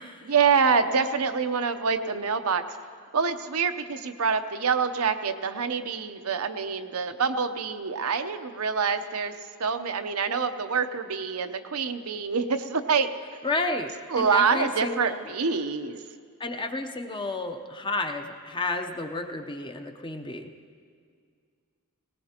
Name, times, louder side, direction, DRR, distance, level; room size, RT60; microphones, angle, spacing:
voice 1, 0.3-2.6 3.1-9.3 9.6-13.1 14.1-16.0, right 5 dB, 85° right, 8 dB, 0.7 m, -26 dB
voice 2, 13.4-15.3 16.4-20.5, left 2 dB, 20° left, 5 dB, 0.7 m, -31 dB
20.0 x 19.0 x 2.9 m, 2.1 s
head